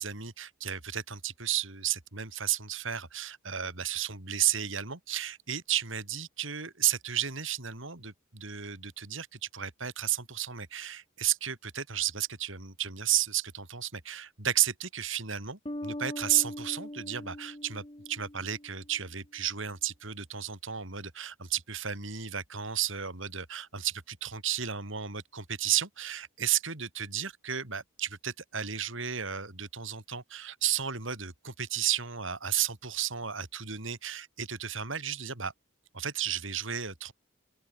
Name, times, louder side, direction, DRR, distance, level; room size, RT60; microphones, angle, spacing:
voice 1, 0.0-35.5 35.9-37.1, right 10 dB, 65° right, 3.7 m, -33 dB
sound 1, 15.7-19.0, left 1 dB, 25° left, 2.5 m, -41 dB
open air
head